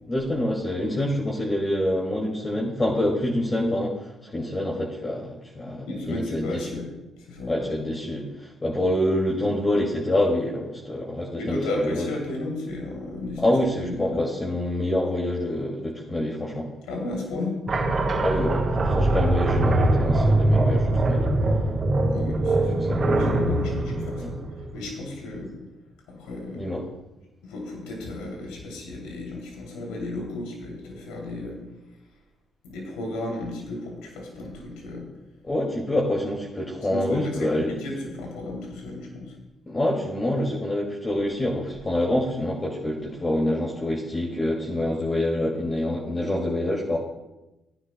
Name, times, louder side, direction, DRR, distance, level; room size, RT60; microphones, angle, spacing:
voice 1, 0.1-6.8 7.5-12.1 13.4-16.7 18.2-21.3 22.8-22.9 24.2-24.3 26.5-26.9 35.4-37.7 39.7-47.0, left 1 dB, 30° left, -3 dB, 2.2 m, -26 dB
voice 2, 5.9-6.9 7.2-7.5 11.4-13.5 13.8-14.2 16.9-17.6 22.1-24.4 24.7-25.5 26.1-26.6 27.4-31.6 32.6-35.1 36.9-39.4, left 2 dB, 80° left, -1 dB, 2.8 m, -33 dB
sound 1, 17.7-25.1, right 2 dB, 50° right, 3.7 m, -22 dB
16.0 x 10.0 x 2.2 m, 0.98 s
hypercardioid pair, 50°, 0 cm